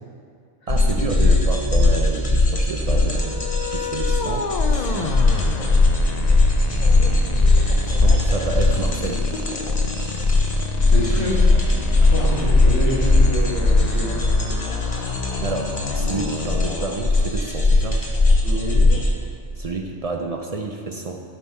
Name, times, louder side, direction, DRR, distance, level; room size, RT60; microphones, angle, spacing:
sound 1, 0.7-19.1, left 2 dB, 30° left, 0.8 m, -19 dB
voice 1, 0.7-5.2 6.7-6.8 7.1-7.3 7.8-9.3 15.4-18.1 19.6-21.2, right 3 dB, 50° right, 2 dB, 0.4 m, -30 dB
sound 2, 3.2-17.0, left 5 dB, 60° left, 0.4 m, -30 dB
voice 2, 10.9-11.4 12.1-14.6 18.4-18.8, left 1 dB, 80° left, -8 dB, 3.1 m, -27 dB
12.0 x 5.5 x 4.3 m, 2.2 s
omnidirectional pair, 1.3 m